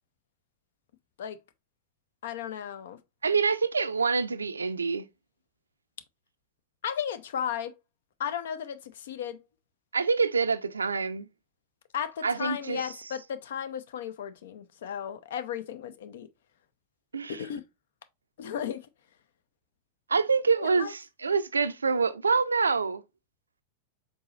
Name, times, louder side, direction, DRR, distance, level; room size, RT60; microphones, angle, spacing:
voice 1, 2.2-3.0 6.8-7.7 8.2-9.4 11.9-16.3 17.3-17.6 18.4-18.8 20.6-20.9, left 9 dB, 60° left, 0.5 m, -35 dB
voice 2, 3.2-5.1 9.9-11.3 12.2-12.9 17.1-17.4 20.1-23.0, right 5 dB, 75° right, 0.4 m, -26 dB
4.7 x 4.0 x 2.4 m
figure-of-eight pair, 90°, 0 cm